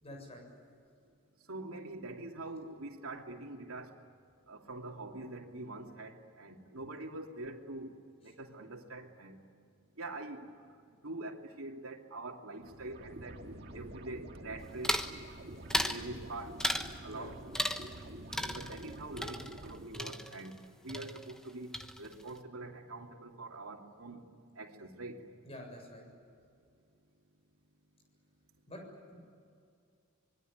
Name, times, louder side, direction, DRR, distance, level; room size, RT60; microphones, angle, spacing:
voice 1, 0.0-0.5 17.1-17.3 18.5-18.6 25.4-26.1 28.7-28.8, left 1 dB, 30° left, 2 dB, 7.3 m, -47 dB
voice 2, 1.5-4.0 4.5-7.9 8.2-9.4 9.9-10.7 11.0-13.4 13.7-15.1 15.9-16.6 17.0-17.4 18.5-24.3 24.6-25.2, right 2 dB, 80° right, 2 dB, 2.8 m, -44 dB
sound 1, 12.6-19.9, right 1 dB, 50° right, 2.2 m, -48 dB
sound 2, 14.8-15.2 15.7-16.0 16.6-17.0 17.5-18.1 18.3-20.6 20.9-21.5 21.7-22.3, equal, 5° left, 1.1 m, -35 dB
25.5 x 22.0 x 9.4 m, 2.4 s
head